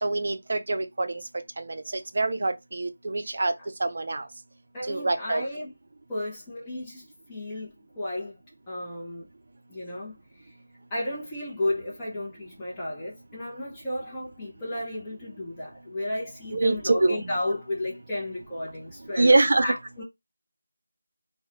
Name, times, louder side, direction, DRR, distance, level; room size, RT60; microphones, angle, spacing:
voice 1, 0.0-1.2 1.6-1.8 2.2-3.5 3.8-4.2 4.9-5.4 16.5-17.3 19.2-19.7, right 2 dB, 50° right, 0.4 m, -24 dB
voice 2, 3.2-3.7 4.7-5.7 6.1-8.4 8.7-9.3 9.7-10.6 10.9-19.4 19.6-20.0, left 1 dB, 15° left, 0.5 m, -33 dB
2.4 x 2.0 x 2.8 m
figure-of-eight pair, 170°, 0 cm